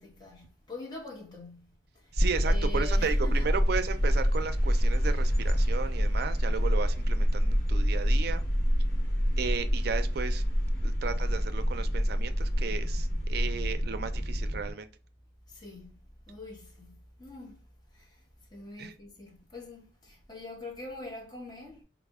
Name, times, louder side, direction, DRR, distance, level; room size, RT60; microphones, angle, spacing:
voice 1, 0.0-3.6 15.5-16.0 16.3-17.6 17.9-18.2 18.5-21.8, left 2 dB, 25° left, 0.9 m, -44 dB
voice 2, 2.1-8.4 9.4-10.4 10.8-14.9 18.8-18.9, right 5 dB, 60° right, 0.4 m, -34 dB
sound 1, 2.2-14.7, equal, 55° left, 1.0 m, -27 dB
4.0 x 2.0 x 3.5 m
head